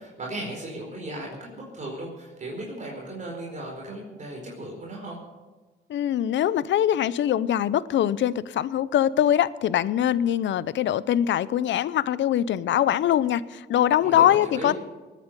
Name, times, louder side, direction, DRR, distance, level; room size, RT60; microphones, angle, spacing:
voice 1, 0.0-5.2 14.0-14.7, right 1 dB, 40° right, -2 dB, 4.7 m, -36 dB
voice 2, 5.9-14.7, left 11 dB, 70° left, 18 dB, 0.7 m, -23 dB
19.5 x 9.4 x 6.7 m, 1.3 s
cardioid pair, 90°, 20 cm